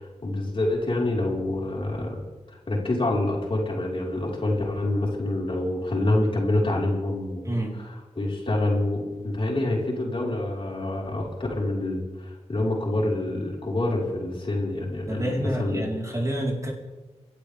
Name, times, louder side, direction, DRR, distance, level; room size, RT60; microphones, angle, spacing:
voice 1, 0.0-2.2 2.7-7.5 7.8-7.9 8.2-15.8, left 1 dB, 45° left, -3 dB, 4.8 m, -26 dB
voice 2, 7.4-7.8 15.1-16.7, right 1 dB, 25° right, -2 dB, 4.3 m, -28 dB
28.0 x 12.0 x 3.6 m, 1.2 s
wide cardioid pair, 70°, 12 cm